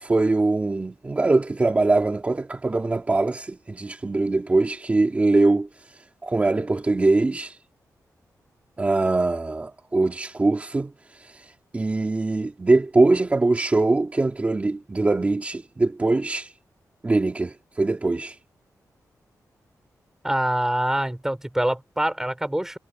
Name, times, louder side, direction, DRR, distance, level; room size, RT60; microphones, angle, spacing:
voice 1, 0.0-7.6 8.8-16.5 17.0-18.4, right 2 dB, 25° right, 2.4 m, -22 dB
voice 2, 20.2-22.8, right 1 dB, 5° right, 5.4 m, -25 dB
wide cardioid pair, 140°, 6 cm